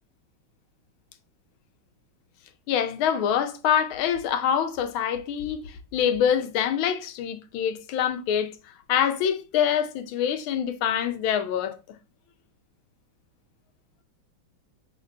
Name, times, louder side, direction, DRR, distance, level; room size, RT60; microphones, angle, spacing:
voice 1, 2.7-8.5 8.9-11.8, left 8 dB, 90° left, 1.5 m, -25 dB
5.2 x 3.2 x 2.6 m
omnidirectional pair, 2.2 m